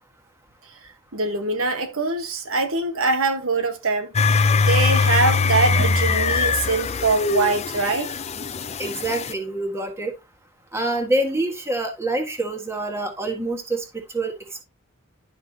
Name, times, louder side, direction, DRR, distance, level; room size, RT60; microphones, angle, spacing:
voice 1, 1.1-4.1 4.6-8.1, right 3 dB, 80° right, 1.4 m, -23 dB
sound 1, 4.1-9.3, left 4 dB, 30° left, 0.5 m, -21 dB
voice 2, 8.8-10.1 10.7-13.8 14.1-14.3, right 2 dB, 10° right, 1.6 m, -26 dB
11.5 x 5.8 x 2.8 m
head